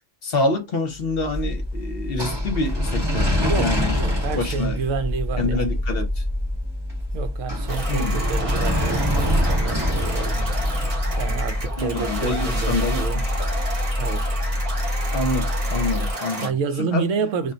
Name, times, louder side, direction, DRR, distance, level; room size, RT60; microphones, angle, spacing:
voice 1, 0.2-4.0 4.3-4.8 5.4-6.1 7.9-8.2 11.8-13.0 15.1-16.5 16.9-17.0, left 2 dB, 50° left, 0.9 m, -26 dB
sound 1, 1.1-14.2, equal, 20° right, 0.9 m, -27 dB
sound 2, 1.3-16.1, left 1 dB, 20° left, 0.8 m, -28 dB
voice 2, 3.5-5.8 7.1-10.6 11.2-13.3 14.0-14.3 16.4-17.5, right 5 dB, 75° right, 0.9 m, -29 dB
sound 3, 7.7-16.5, right 1 dB, 45° right, 0.4 m, -32 dB
2.5 x 2.2 x 3.7 m
omnidirectional pair, 1.4 m